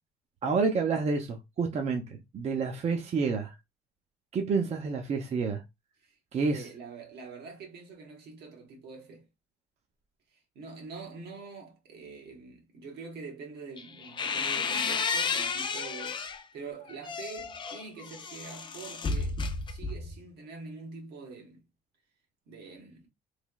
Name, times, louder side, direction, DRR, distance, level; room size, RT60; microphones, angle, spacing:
voice 1, 0.4-2.0 2.3-3.5 4.3-5.6 6.3-6.7, right 4 dB, 40° right, 0.6 m, -28 dB
voice 2, 6.5-9.3 10.3-19.4 19.7-21.6 22.5-23.1, right 4 dB, 75° right, 1.2 m, -45 dB
sound 1, 13.8-16.4 16.9-20.2, left 4 dB, 30° left, 0.4 m, -32 dB
3.2 x 2.9 x 2.2 m
cardioid pair, 110°, 17 cm